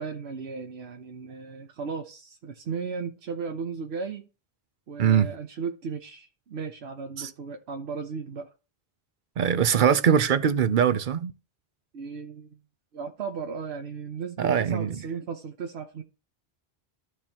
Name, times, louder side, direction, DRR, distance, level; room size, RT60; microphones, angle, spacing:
voice 1, 0.0-4.3 4.9-8.5 11.9-12.6 12.9-16.0, right 5 dB, 85° right, 1.1 m, -36 dB
voice 2, 5.0-5.3 7.2-7.3 9.4-11.3 14.4-15.0, right 8 dB, 55° right, 0.8 m, -22 dB
14.0 x 4.8 x 2.9 m
omnidirectional pair, 1.0 m